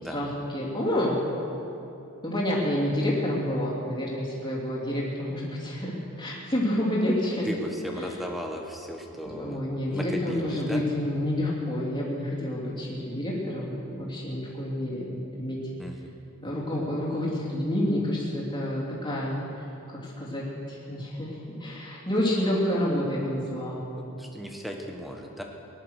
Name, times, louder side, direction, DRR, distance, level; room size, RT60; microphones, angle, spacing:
voice 1, 0.1-1.2 2.2-7.5 8.0-8.1 9.3-15.6 16.4-19.4 20.0-21.3 21.6-23.8, left 1 dB, 20° left, -6 dB, 3.1 m, -28 dB
voice 2, 7.4-10.8 15.8-16.1 24.0-25.4, equal, ahead, 2 dB, 1.3 m, -36 dB
19.0 x 11.0 x 6.5 m, 2.9 s
head